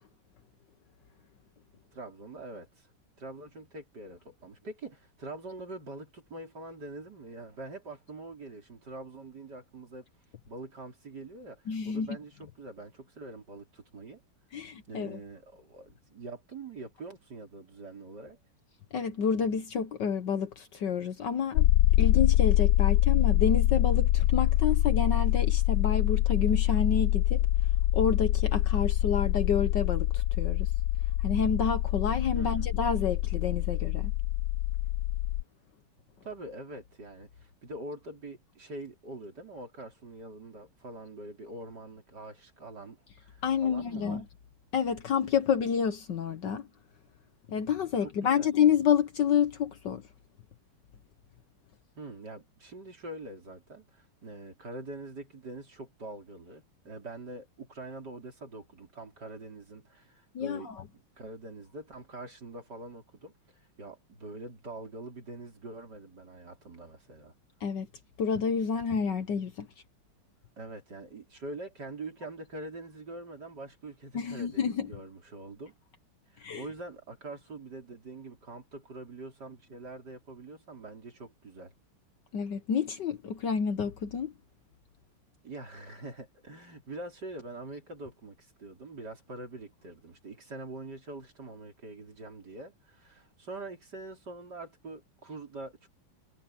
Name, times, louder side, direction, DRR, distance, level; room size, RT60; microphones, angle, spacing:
voice 1, 1.9-2.9 3.2-10.0 10.5-14.2 14.9-18.4 32.3-32.7 36.2-44.2 48.0-48.5 52.0-67.3 70.6-75.7 76.3-81.7 85.4-95.9, right 2 dB, 50° right, 4.7 m, -44 dB
voice 2, 11.7-12.1 14.5-15.2 18.9-21.7 22.0-27.5 27.9-30.7 31.2-34.1 43.4-44.2 44.7-46.7 47.5-50.0 60.3-60.8 67.6-67.9 68.2-69.7 74.1-74.9 76.4-76.6 82.3-84.3, left 7 dB, 60° left, 1.5 m, -29 dB
sound 1, 21.5-35.4, left 15 dB, 75° left, 1.2 m, -25 dB
omnidirectional pair, 2.4 m